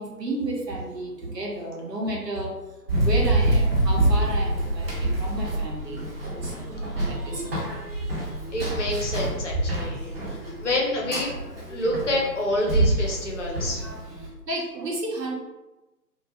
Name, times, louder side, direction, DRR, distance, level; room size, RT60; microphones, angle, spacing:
voice 1, 0.0-2.5 3.0-7.9 8.8-8.9 9.3-10.8 11.1-11.2 11.7-12.3 13.0-15.3, right 1 dB, 75° right, -2 dB, 0.9 m, -34 dB
Run, 2.9-14.3, right 1 dB, 35° right, 0.5 m, -26 dB
voice 2, 8.5-11.3 11.7-13.8, left 1 dB, 45° left, -2 dB, 0.6 m, -28 dB
2.2 x 2.0 x 2.8 m, 1.1 s
figure-of-eight pair, 135°, 50 cm